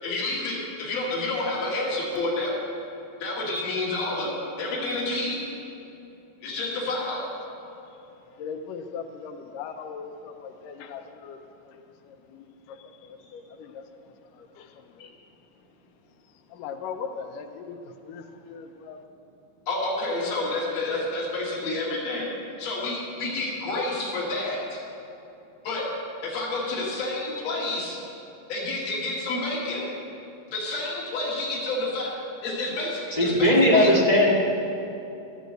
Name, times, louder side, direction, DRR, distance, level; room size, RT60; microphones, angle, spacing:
voice 1, 0.0-2.6 3.2-5.4 6.4-7.2 15.0-15.1 19.7-22.3 22.6-24.8 25.6-25.9 26.2-28.0 28.5-29.9 30.5-33.9, left 2 dB, 55° left, 3.0 m, -29 dB
voice 2, 8.4-11.4 11.6-15.1 16.5-19.0, left 6 dB, 85° left, 2.3 m, -40 dB
voice 3, 33.1-34.3, left 1 dB, 25° left, 0.8 m, -18 dB
12.0 x 8.3 x 7.7 m
omnidirectional pair, 3.8 m